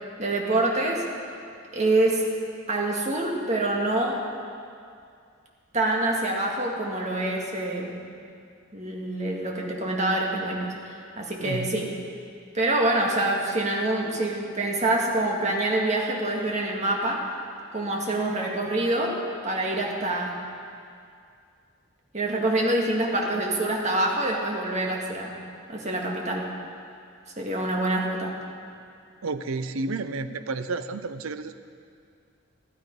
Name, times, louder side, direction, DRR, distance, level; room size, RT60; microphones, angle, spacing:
voice 1, 0.2-1.1 1.7-2.3 2.7-4.3 5.7-8.1 8.7-11.9 12.5-17.3 17.7-20.4 22.1-25.4 25.7-26.5 27.4-28.3, right 2 dB, 35° right, -1 dB, 1.8 m, -26 dB
voice 2, 11.4-11.9 29.2-31.5, right 3 dB, 85° right, 11 dB, 0.6 m, -31 dB
14.5 x 12.5 x 5.3 m, 2.3 s
head